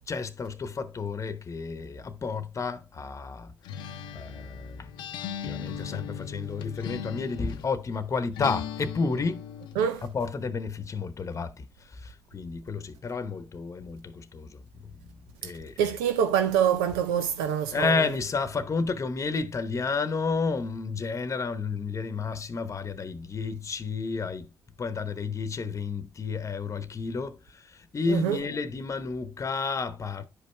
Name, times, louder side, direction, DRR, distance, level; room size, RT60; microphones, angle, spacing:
voice 1, 0.1-3.5 4.1-4.9 5.4-9.4 10.0-14.9 15.4-16.0 17.7-24.5 24.8-30.2, left 4 dB, 40° left, 1.0 m, -31 dB
Acoustic guitar, 3.6-7.8 8.4-9.9, left 8 dB, 75° left, 0.7 m, -38 dB
voice 2, 15.8-17.9 28.1-28.4, right 9 dB, 80° right, 0.6 m, -25 dB
10.0 x 5.3 x 3.3 m
hypercardioid pair, 45°, 8 cm